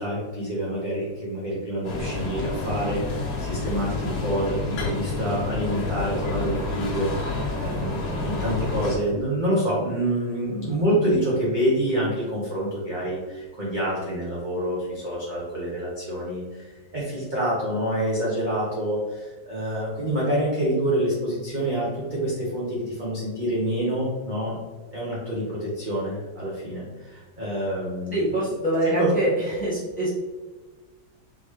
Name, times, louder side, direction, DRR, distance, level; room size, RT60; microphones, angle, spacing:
voice 1, 0.0-24.6 24.9-28.5 28.8-29.1, equal, 35° right, -7 dB, 0.8 m, -27 dB
sound 1, 1.8-9.0, left 2 dB, 65° left, 1.5 m, -29 dB
voice 2, 28.1-29.3 29.6-30.1, right 1 dB, 5° left, -9 dB, 1.2 m, -24 dB
3.9 x 3.8 x 3.2 m, 1.3 s
omnidirectional pair, 2.0 m